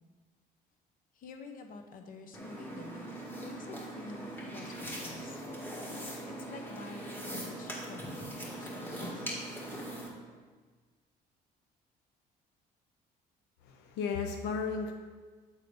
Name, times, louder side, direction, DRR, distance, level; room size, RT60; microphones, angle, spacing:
voice 1, 1.1-3.1 3.4-5.4 5.9-9.3, left 4 dB, 55° left, 5 dB, 0.9 m, -49 dB
sound 1, 2.3-10.1, right 1 dB, 10° left, 1.8 m, -41 dB
voice 2, 13.6-14.9, left 5 dB, 85° left, 4 dB, 0.6 m, -34 dB
8.2 x 3.8 x 5.1 m, 1.4 s
cardioid pair, 110°, 17 cm